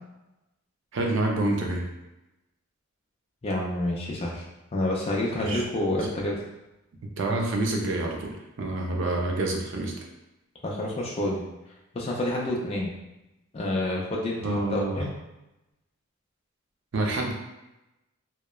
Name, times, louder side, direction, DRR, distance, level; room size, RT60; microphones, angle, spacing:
voice 1, 0.9-1.9 5.4-5.6 5.9-6.0 7.2-10.0 14.4-15.1 16.9-17.3, right 2 dB, 60° right, 0 dB, 0.4 m, -27 dB
voice 2, 3.4-4.4 4.7-6.4 10.6-11.4 11.9-12.9 13.5-15.1, left 1 dB, 25° left, -3 dB, 0.4 m, -28 dB
2.8 x 2.0 x 2.2 m, 0.96 s
head